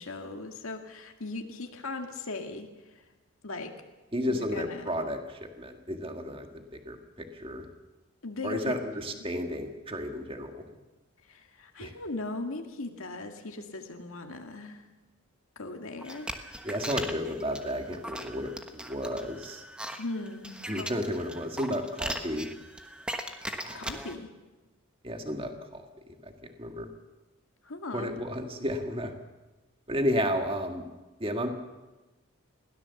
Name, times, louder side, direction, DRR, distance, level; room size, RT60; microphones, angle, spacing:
voice 1, 0.0-2.7 3.4-3.7 4.3-4.9 8.2-8.7 11.3-14.8 15.6-16.4 20.0-21.0 23.7-24.3 27.6-28.1, left 2 dB, 75° left, 4 dB, 2.0 m, -38 dB
voice 2, 4.1-7.7 8.4-10.6 11.8-11.9 16.6-19.6 20.7-22.5 23.6-23.8 25.0-25.8 26.2-26.9 27.9-29.1 29.9-30.9 31.2-31.5, equal, 25° right, 5 dB, 1.9 m, -32 dB
sound 1, 16.0-24.2, right 1 dB, 5° right, 1.2 m, -39 dB
21.5 x 17.0 x 7.2 m, 1.1 s
head